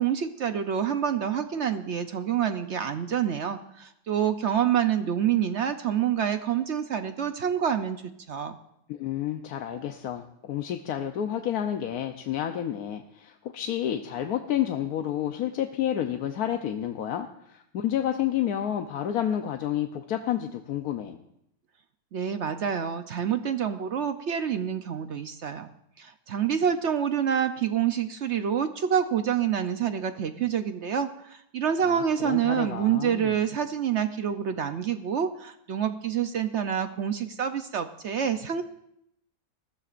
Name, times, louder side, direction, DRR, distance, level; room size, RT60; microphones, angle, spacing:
voice 1, 0.0-8.0 8.3-8.6 22.1-25.7 26.0-38.6, right 8 dB, 60° right, 8 dB, 0.8 m, -27 dB
voice 2, 8.9-21.2 31.8-33.3, left 10 dB, 75° left, 5 dB, 1.2 m, -30 dB
20.5 x 15.0 x 2.5 m, 0.77 s
omnidirectional pair, 1.6 m